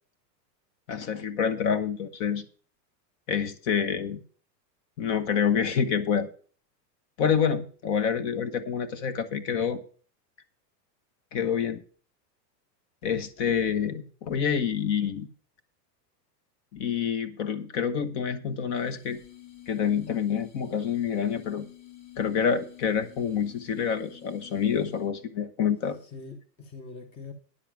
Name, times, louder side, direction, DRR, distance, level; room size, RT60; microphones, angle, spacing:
voice 1, 0.9-2.4 3.3-4.2 5.0-6.3 7.2-9.8 11.3-11.8 13.0-15.3 16.7-19.2 19.7-21.7 22.2-26.0, left 7 dB, 45° left, 1.0 m, -27 dB
voice 2, 13.0-14.0 26.1-27.3, left 3 dB, 10° left, 0.6 m, -44 dB
sound 1, 18.7-25.2, left 13 dB, 60° left, 1.8 m, -50 dB
9.9 x 7.0 x 5.9 m
supercardioid pair, 160°, 49 cm